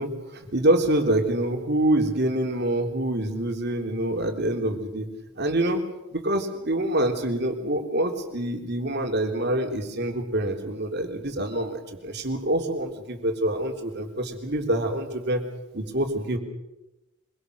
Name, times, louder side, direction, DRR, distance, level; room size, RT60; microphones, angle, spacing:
voice 1, 0.0-5.1 5.4-5.8 6.1-15.4 15.7-16.4, right 1 dB, 50° right, 3 dB, 3.5 m, -26 dB
25.0 x 23.0 x 6.8 m, 0.99 s
head